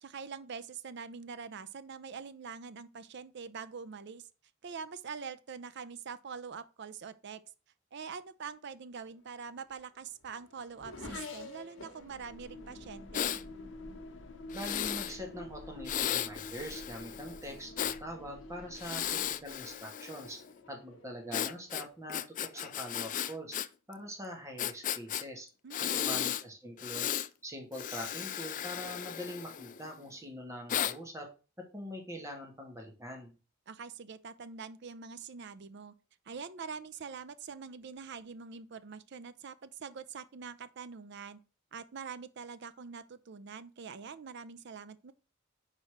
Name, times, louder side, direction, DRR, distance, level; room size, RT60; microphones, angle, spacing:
voice 1, 0.0-4.3 4.6-7.4 7.9-13.4 25.6-26.4 33.7-35.9 36.3-41.4 41.7-45.1, right 6 dB, 55° right, 0.5 m, -44 dB
Race car auto racing / Accelerating revving vroom, 9.1-15.0 15.8-16.2 16.6-22.5, left 3 dB, 75° left, 1.3 m, -52 dB
sound 1, 12.0-19.8, left 1 dB, 60° left, 0.7 m, -48 dB
Breathing, 13.1-13.4 14.5-15.1 15.8-18.0 18.7-20.4 21.3-23.7 23.9-24.0 24.6-25.2 25.7-26.4 26.8-27.3 27.7-29.9 30.7-30.9, left 10 dB, 40° left, 0.3 m, -35 dB
voice 2, 14.5-20.4 20.7-23.6 23.9-25.5 25.9-27.1 27.4-31.3 31.6-33.3, equal, 15° right, 1.7 m, -43 dB
4.8 x 4.3 x 5.7 m
head